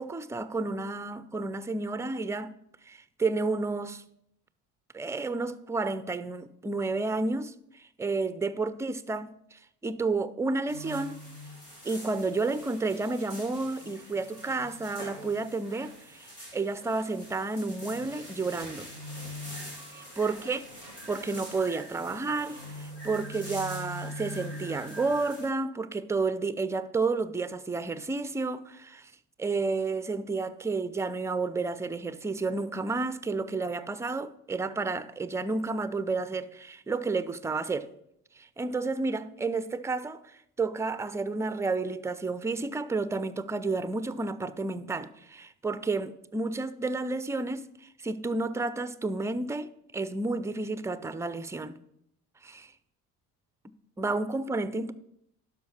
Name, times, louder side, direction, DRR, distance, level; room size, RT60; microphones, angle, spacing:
voice 1, 0.0-2.5 2.9-4.0 4.9-11.2 11.8-18.9 19.9-20.6 21.1-29.1 29.4-37.9 38.4-51.8 52.4-52.7 54.0-54.9, right 3 dB, 5° right, 0.4 m, -31 dB
sound 1, 10.7-25.5, equal, 85° left, 3.4 m, -43 dB
11.5 x 5.1 x 6.0 m
figure-of-eight pair, 55°, 46 cm